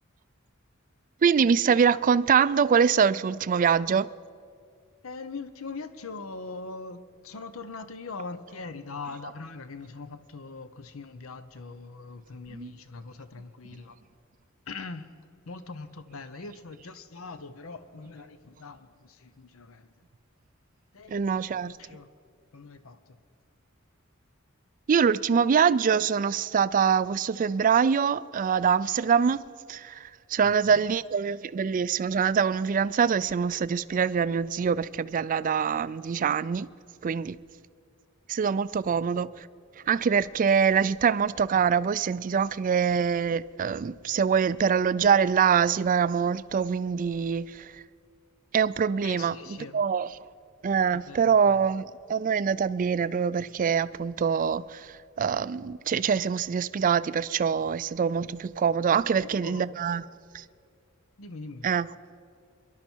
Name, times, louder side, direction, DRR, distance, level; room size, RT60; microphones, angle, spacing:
voice 1, 1.2-4.1 12.5-12.7 21.1-21.7 24.9-36.7 37.0-37.4 38.3-39.5 39.9-47.8 48.5-49.3 49.7-50.1 50.6-60.0 60.3-60.4 61.6-61.9, right 6 dB, 40° right, 0.3 m, -24 dB
voice 2, 5.0-14.0 14.7-15.1 15.4-19.9 20.9-21.2 21.6-22.1 22.5-23.2 30.4-30.9 49.0-49.8 50.9-51.6 59.1-59.7 61.2-61.7, left 4 dB, 75° left, 0.8 m, -42 dB
25.0 x 11.5 x 4.5 m
head